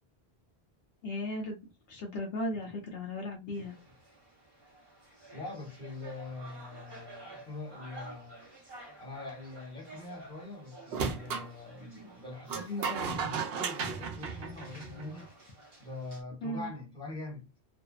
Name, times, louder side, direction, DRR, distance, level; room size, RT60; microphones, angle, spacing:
voice 1, 1.0-1.6 1.9-3.8 16.4-16.7, left 1 dB, 65° left, 0.8 m, -36 dB
sound 1, 3.5-16.2, right 2 dB, 25° right, 0.7 m, -52 dB
voice 2, 5.3-8.5 9.0-15.3 15.8-17.5, left 2 dB, 5° left, 1.0 m, -43 dB
sound 2, 10.9-11.5 12.5-15.2, right 5 dB, 70° right, 0.7 m, -34 dB
2.6 x 2.1 x 2.3 m
omnidirectional pair, 1.1 m